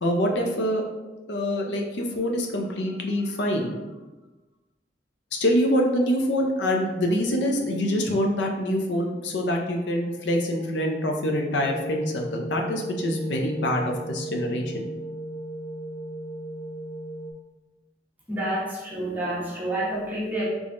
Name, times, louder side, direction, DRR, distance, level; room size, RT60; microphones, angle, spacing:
voice 1, 0.0-0.9 1.3-3.7 5.4-14.7, equal, 85° left, 1 dB, 0.6 m, -25 dB
sound 1, 11.6-17.3, right 1 dB, 40° left, 0.7 m, -35 dB
voice 2, 18.3-20.4, right 1 dB, 10° right, -7 dB, 1.0 m, -29 dB
3.4 x 3.4 x 2.5 m, 1.1 s
head